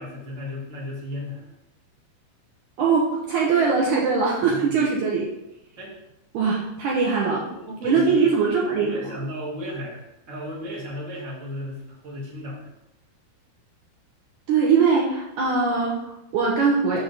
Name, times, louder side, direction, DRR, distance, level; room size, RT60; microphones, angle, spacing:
voice 1, 0.0-1.5 4.5-4.8 5.8-5.9 7.2-12.7, equal, 35° right, -5 dB, 1.3 m, -35 dB
voice 2, 2.8-5.3 6.3-7.4 7.8-9.2 14.5-17.0, right 5 dB, 70° right, -3 dB, 1.9 m, -21 dB
6.6 x 5.9 x 4.0 m, 0.87 s
omnidirectional pair, 4.5 m